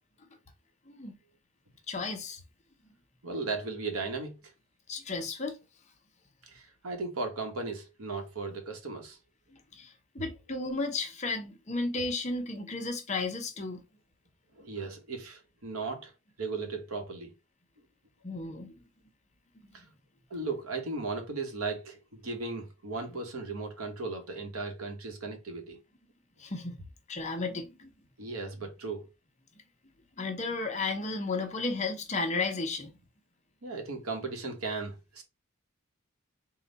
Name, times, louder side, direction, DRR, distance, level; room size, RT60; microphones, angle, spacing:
voice 1, 0.9-1.2 1.9-2.4 4.9-5.6 9.7-13.8 18.2-18.7 26.4-26.8 27.1-27.9 30.2-32.9, left 3 dB, 35° left, 0.7 m, -33 dB
voice 2, 3.2-4.4 6.5-9.2 14.6-16.1 16.4-17.3 19.7-19.8 20.3-25.8 28.2-29.1 33.6-35.2, right 3 dB, 85° right, 1.1 m, -36 dB
3.8 x 2.2 x 3.9 m
head